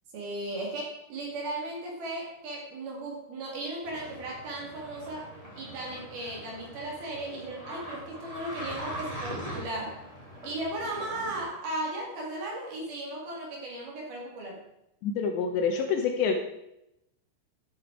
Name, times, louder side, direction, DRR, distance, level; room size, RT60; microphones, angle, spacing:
voice 1, 0.1-5.3 5.6-10.0 10.4-14.6, right 1 dB, 55° right, -1 dB, 3.8 m, -36 dB
sound 1, 3.8-11.4, equal, 10° right, 1.8 m, -42 dB
voice 2, 15.0-16.3, left 6 dB, 75° left, 4 dB, 2.8 m, -27 dB
12.0 x 7.7 x 4.7 m, 0.85 s
omnidirectional pair, 5.6 m